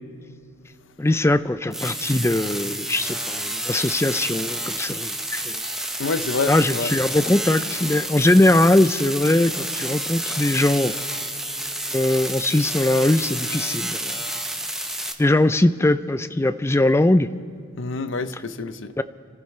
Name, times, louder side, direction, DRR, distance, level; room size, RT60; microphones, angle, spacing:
voice 1, 1.0-5.6 6.5-10.9 11.9-14.2 15.2-17.3 18.3-18.4 19.0-19.1, left 1 dB, 15° left, 13 dB, 0.4 m, -20 dB
sound 1, 1.7-15.1, right 1 dB, ahead, 0.8 m, -29 dB
voice 2, 6.0-6.9 17.8-18.9, left 4 dB, 65° left, 11 dB, 0.7 m, -27 dB
27.5 x 14.5 x 3.2 m, 2.4 s
head